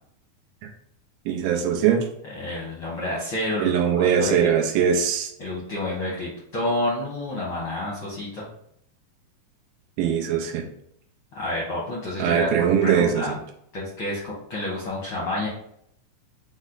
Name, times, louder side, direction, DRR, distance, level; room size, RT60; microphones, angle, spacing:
voice 1, 1.3-2.0 3.6-5.3 10.0-10.7 12.2-13.4, right 8 dB, 90° right, 1 dB, 2.3 m, -21 dB
voice 2, 2.3-4.5 5.4-8.5 11.3-13.3 13.7-15.5, left 1 dB, 70° left, -6 dB, 1.2 m, -29 dB
6.2 x 2.1 x 3.8 m, 0.71 s
omnidirectional pair, 4.0 m